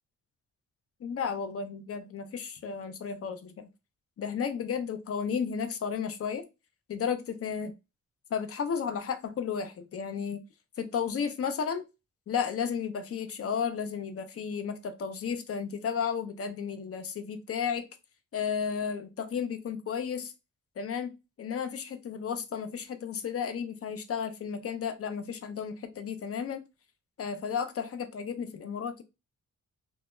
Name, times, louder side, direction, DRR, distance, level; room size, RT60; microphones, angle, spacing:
voice 1, 1.0-3.7 4.2-6.4 6.9-7.7 8.3-10.4 10.8-11.8 12.3-17.9 18.3-20.3 20.8-26.6 27.2-29.0, left 7 dB, 45° left, 0.5 m, -33 dB
2.1 x 2.1 x 3.0 m
cardioid pair, 90°, 31 cm